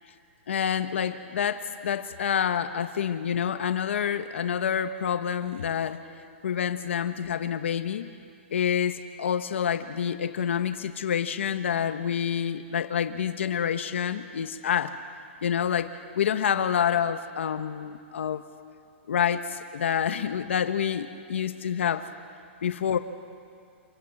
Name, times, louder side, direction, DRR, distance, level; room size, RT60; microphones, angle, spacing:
voice 1, 0.5-6.0 6.4-8.1 8.5-15.0 15.4-18.4 19.1-22.1 22.6-23.0, left 8 dB, 70° left, 9 dB, 1.2 m, -27 dB
27.0 x 24.0 x 7.9 m, 2.3 s
hypercardioid pair, 180°, 7 cm